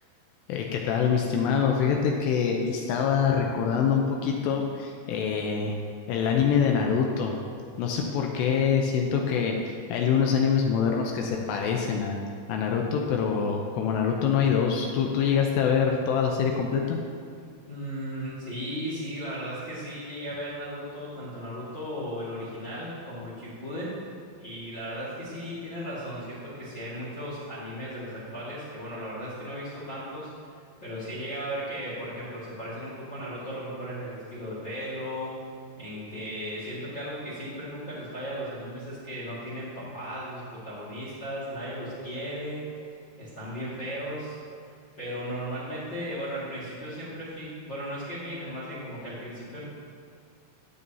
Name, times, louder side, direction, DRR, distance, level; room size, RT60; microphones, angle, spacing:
voice 1, 0.5-5.8 6.1-7.4 7.8-12.2 12.5-17.0, left 6 dB, 85° left, 1 dB, 2.5 m, -25 dB
voice 2, 17.7-23.9 24.4-30.3 30.8-35.4 35.8-42.6 43.2-44.4 45.0-49.6, equal, 55° left, -9 dB, 1.2 m, -36 dB
18.5 x 6.9 x 2.8 m, 2.2 s
omnidirectional pair, 5.5 m